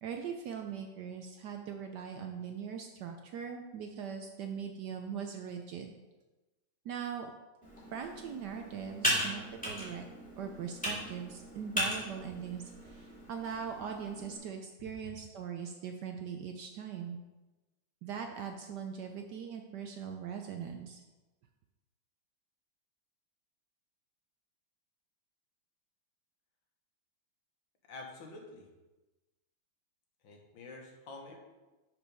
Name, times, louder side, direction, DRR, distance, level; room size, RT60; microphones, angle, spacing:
voice 1, 0.0-5.9 6.8-7.3 7.9-10.1 10.4-17.2 18.0-21.0, right 7 dB, 70° right, 4 dB, 1.1 m, -41 dB
Computer keyboard, 7.6-14.4, equal, 5° left, 2.3 m, -37 dB
voice 2, 27.8-28.7 30.2-31.4, left 3 dB, 70° left, 1 dB, 1.9 m, -48 dB
6.4 x 6.0 x 5.3 m, 1.1 s
omnidirectional pair, 2.2 m